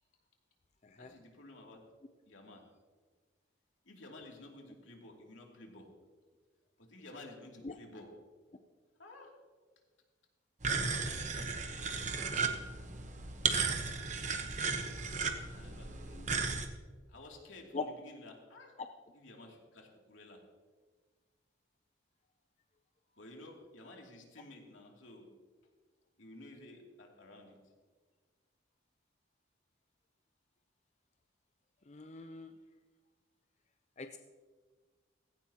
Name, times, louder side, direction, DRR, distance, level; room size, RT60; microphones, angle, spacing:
voice 1, 1.0-1.8 2.3-2.6 3.8-5.9 6.8-8.1 9.0-9.3 11.0-12.0 15.5-16.4 17.1-18.7 19.1-20.4 23.2-25.3 26.2-27.6, left 2 dB, 80° left, 0 dB, 2.7 m, -53 dB
sound 1, 10.6-16.7, right 4 dB, 40° right, 1.0 m, -35 dB
voice 2, 15.6-16.3 17.7-17.9 31.9-32.5 34.0-34.2, left 4 dB, 35° left, 7 dB, 0.5 m, -43 dB
16.5 x 16.0 x 2.9 m, 1.4 s
head